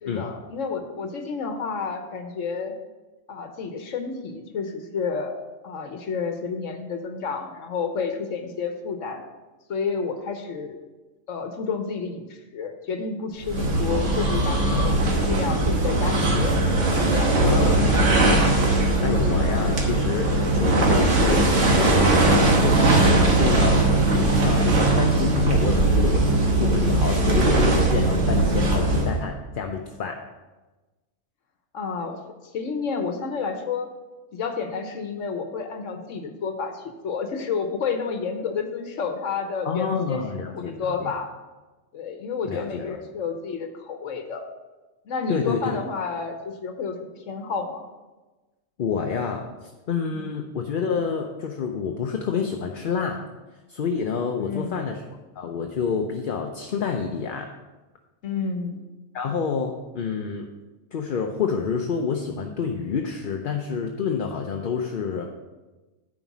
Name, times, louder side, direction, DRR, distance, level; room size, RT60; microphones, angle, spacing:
voice 1, 0.0-2.7 3.3-5.4 5.6-9.2 9.7-10.8 11.3-16.5 17.0-17.3 31.7-32.2 32.5-33.9 34.3-40.2 40.5-41.3 41.9-44.4 45.1-47.8 50.1-50.3 54.4-54.7 58.2-58.8, left 5 dB, 75° left, 6 dB, 1.2 m, -30 dB
sound 1, 13.4-29.2, right 2 dB, 70° right, 1.6 m, -20 dB
voice 2, 17.4-18.6 19.0-30.2 39.6-41.1 42.4-43.0 45.3-45.8 48.8-53.2 53.7-55.0 55.4-57.5 59.1-60.5 60.9-65.3, left 6 dB, 50° left, 3 dB, 0.7 m, -28 dB
9.4 x 5.0 x 6.0 m, 1.2 s
omnidirectional pair, 1.3 m